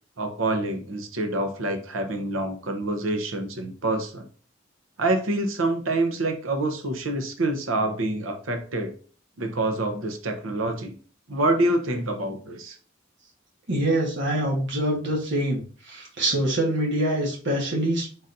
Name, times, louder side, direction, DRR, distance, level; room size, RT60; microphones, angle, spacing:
voice 1, 0.2-4.3 5.0-8.9 9.4-11.0 11.3-12.8, right 2 dB, 85° right, 6 dB, 0.8 m, -26 dB
voice 2, 13.7-15.6 15.9-18.3, right 1 dB, 65° right, -2 dB, 1.3 m, -25 dB
4.1 x 3.9 x 2.6 m, 0.41 s
head